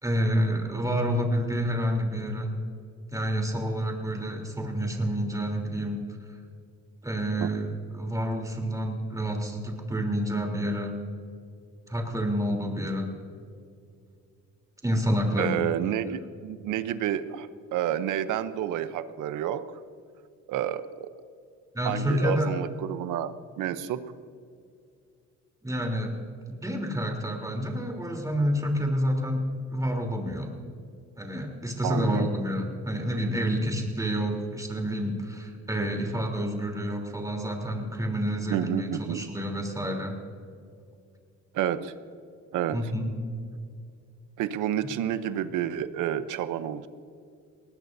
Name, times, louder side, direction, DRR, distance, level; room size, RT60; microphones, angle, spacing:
voice 1, 0.0-2.5 3.1-6.0 6.3-6.4 7.0-11.0 11.9-13.1 14.8-15.6 15.9-16.0 21.7-22.5 25.6-26.1 26.6-29.4 29.7-30.5 31.2-40.2 42.7-43.1, equal, 10° right, 2 dB, 3.4 m, -28 dB
voice 2, 15.4-19.6 20.5-21.1 21.8-24.0 31.8-32.3 38.5-39.2 41.5-41.9 42.5-42.8 44.4-46.9, right 10 dB, 90° right, 12 dB, 0.8 m, -30 dB
20.0 x 18.5 x 2.7 m, 2.4 s
cardioid pair, 90°, 30 cm